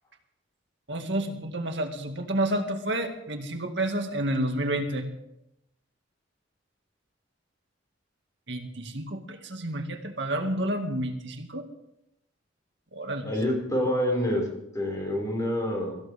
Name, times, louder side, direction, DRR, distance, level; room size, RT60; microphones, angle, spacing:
voice 1, 0.9-5.1 8.5-11.6 12.9-13.3, right 1 dB, 70° right, 4 dB, 2.2 m, -30 dB
voice 2, 13.2-14.5 14.7-15.9, left 1 dB, 20° left, 0 dB, 5.8 m, -27 dB
24.5 x 15.5 x 3.6 m, 0.81 s
head